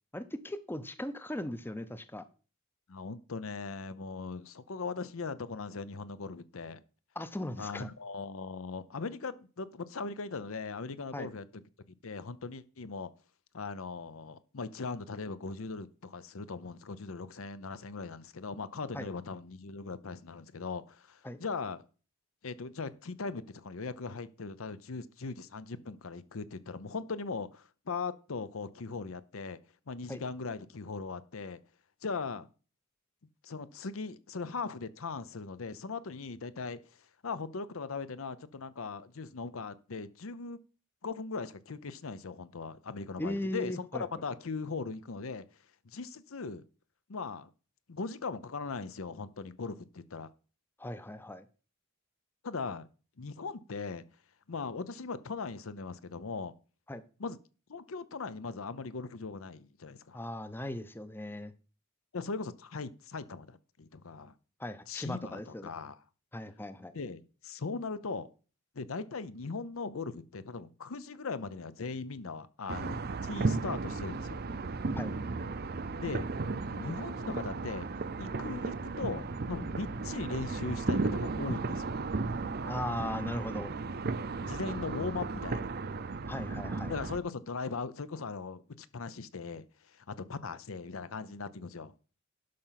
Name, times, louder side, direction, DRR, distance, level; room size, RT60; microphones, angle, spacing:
voice 1, 0.1-2.2 7.2-7.9 11.1-11.3 18.9-19.1 21.2-21.4 30.1-30.2 43.2-44.0 50.8-51.4 56.9-57.0 60.1-61.5 64.6-65.7 66.3-67.0 74.9-75.1 82.6-83.7 86.3-86.9, left 1 dB, 10° left, 0.6 m, -38 dB
voice 2, 2.9-6.8 7.6-11.4 12.0-13.1 13.5-21.8 22.4-29.6 29.9-31.6 32.0-32.5 33.4-40.6 41.0-45.4 45.8-46.6 47.1-47.5 47.9-50.3 52.4-52.9 53.2-54.0 54.5-56.5 57.2-57.4 57.7-60.2 62.1-64.3 64.9-66.0 66.9-68.3 68.7-73.0 73.2-74.5 76.0-76.3 76.7-77.9 78.2-81.9 84.4-85.7 86.9-91.9, left 4 dB, 70° left, 0.7 m, -39 dB
sound 1, 72.7-87.2, right 3 dB, 50° right, 0.6 m, -35 dB
11.5 x 5.6 x 5.8 m
head